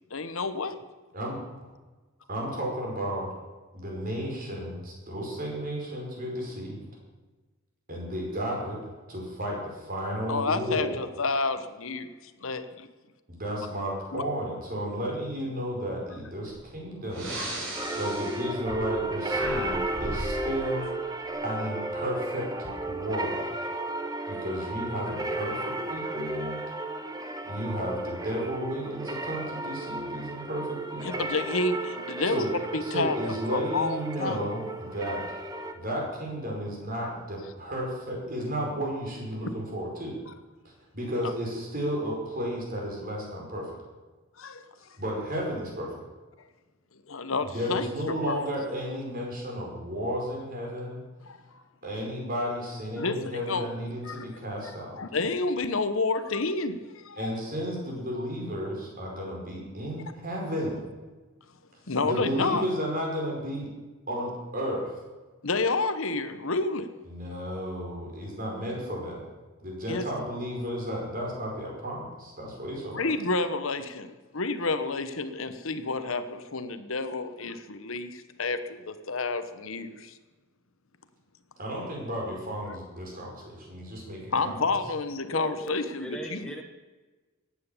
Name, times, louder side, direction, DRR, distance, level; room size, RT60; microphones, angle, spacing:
voice 1, 0.1-0.8 10.3-12.1 12.4-12.9 14.1-14.2 17.4-17.5 17.8-18.0 31.0-34.4 41.2-41.3 44.4-44.7 47.1-48.4 51.3-51.4 53.0-53.7 54.0-54.1 55.0-56.8 57.0-57.3 61.9-62.6 65.4-66.9 69.9-70.0 72.9-80.1 84.3-86.5, left 3 dB, 70° left, 11 dB, 1.1 m, -30 dB
voice 2, 2.3-3.3 3.7-6.8 7.9-8.8 9.1-11.0 13.3-17.3 18.0-20.9 21.4-23.4 24.3-26.6 27.4-31.3 32.2-35.2 35.7-40.2 40.9-43.7 45.0-45.9 47.5-51.0 51.8-54.9 57.2-60.8 62.0-63.7 64.1-64.9 67.0-69.2 69.6-73.1 81.6-84.6, equal, 40° right, -2 dB, 5.1 m, -33 dB
Breathing, 16.5-16.6 17.1-19.0 19.3-20.4, right 1 dB, 65° right, 5.3 m, -36 dB
sound 1, 17.7-35.7, right 2 dB, 20° right, 1.3 m, -34 dB
voice 3, 85.3-86.6, equal, 5° left, 2 dB, 1.0 m, -38 dB
15.0 x 9.5 x 7.2 m, 1.3 s
head